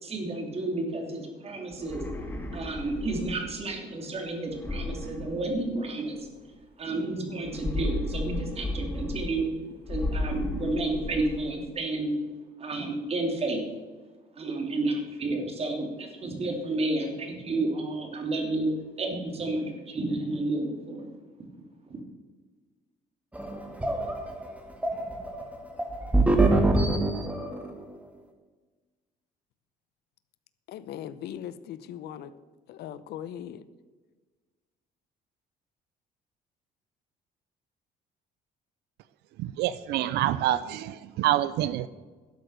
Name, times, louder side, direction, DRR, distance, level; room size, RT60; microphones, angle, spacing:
voice 1, 0.0-6.2 6.8-9.5 9.9-12.1 12.6-13.7 14.3-18.7 19.0-21.1 21.9-22.0, right 2 dB, 35° right, 3 dB, 2.9 m, -31 dB
sound 1, 1.7-3.6 4.5-6.0 7.4-9.5 9.8-11.6, left 2 dB, 15° left, 1.9 m, -34 dB
sound 2, 23.4-27.7, right 2 dB, 10° right, 1.9 m, -25 dB
voice 2, 30.7-32.3 32.7-33.6, left 10 dB, 75° left, 15 dB, 0.8 m, -39 dB
voice 3, 39.4-41.9, right 13 dB, 80° right, 15 dB, 0.5 m, -27 dB
12.5 x 8.0 x 6.5 m, 1.3 s
cardioid pair, 110°, 17 cm